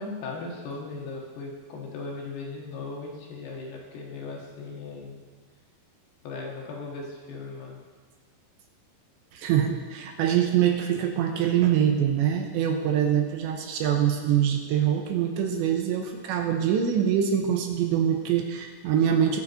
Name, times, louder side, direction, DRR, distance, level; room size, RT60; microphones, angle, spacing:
voice 1, 0.0-5.2 6.2-7.8, left 3 dB, 65° left, -2 dB, 3.3 m, -37 dB
voice 2, 9.3-19.4, right 9 dB, 80° right, 4 dB, 3.0 m, -24 dB
22.0 x 7.5 x 4.1 m, 1.5 s
omnidirectional pair, 5.5 m